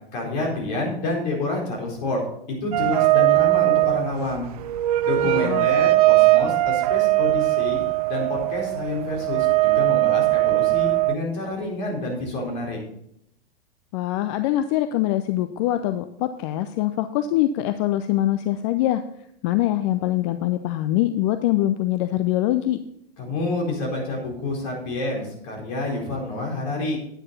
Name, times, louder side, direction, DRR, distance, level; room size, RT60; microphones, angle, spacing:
voice 1, 0.1-2.2 2.6-4.5 5.0-7.8 8.1-12.8 23.2-27.0, left 2 dB, 45° left, -1 dB, 4.3 m, -28 dB
sound 1, 2.7-11.1, right 19 dB, 40° right, 0.4 m, -20 dB
voice 2, 5.2-5.7 13.9-19.0 19.4-22.8, left 14 dB, 30° left, 10 dB, 0.5 m, -23 dB
9.8 x 9.1 x 4.1 m, 0.74 s
figure-of-eight pair, 100°, 30 cm